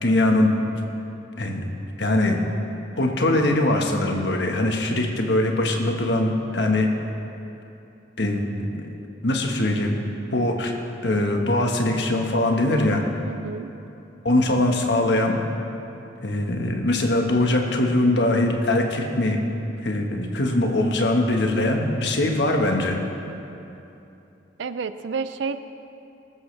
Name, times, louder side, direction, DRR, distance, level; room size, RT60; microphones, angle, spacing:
voice 1, 0.0-0.5 1.4-1.6 2.0-2.4 3.0-6.9 8.2-8.4 9.2-10.0 10.3-10.7 11.0-13.0 14.2-15.4 16.2-19.4 19.8-23.0, left 1 dB, 65° left, 2 dB, 1.4 m, -22 dB
voice 2, 13.2-13.7 24.6-25.6, right 5 dB, 80° right, 11 dB, 0.4 m, -30 dB
20.5 x 13.0 x 3.3 m, 2.8 s
head